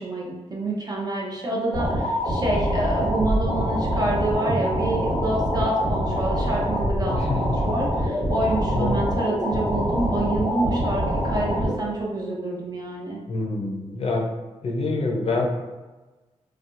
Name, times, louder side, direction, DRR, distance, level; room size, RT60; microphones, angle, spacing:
voice 1, 0.0-13.2, right 1 dB, 35° right, -3 dB, 0.7 m, -27 dB
sound 1, 1.7-11.7, equal, 70° right, 1.4 m, -25 dB
voice 2, 13.3-14.3 14.6-15.5, left 3 dB, 60° left, 1 dB, 0.6 m, -26 dB
4.2 x 2.3 x 2.5 m, 1.2 s
wide cardioid pair, 125°, 12 cm